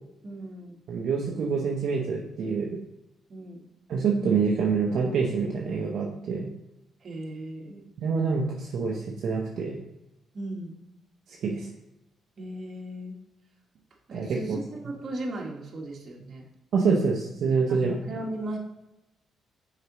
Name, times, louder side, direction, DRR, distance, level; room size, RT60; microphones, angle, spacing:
voice 1, 0.2-0.8 3.3-3.6 7.0-7.8 10.3-10.8 12.4-13.2 14.1-16.5 17.7-18.6, right 1 dB, 45° right, 0 dB, 1.5 m, -37 dB
voice 2, 0.9-2.8 3.9-6.5 8.0-9.8 11.4-11.7 14.1-14.6 16.7-17.9, right 5 dB, 65° right, -2 dB, 0.8 m, -26 dB
6.6 x 5.0 x 3.0 m, 0.92 s
cardioid pair, 90°, 0 cm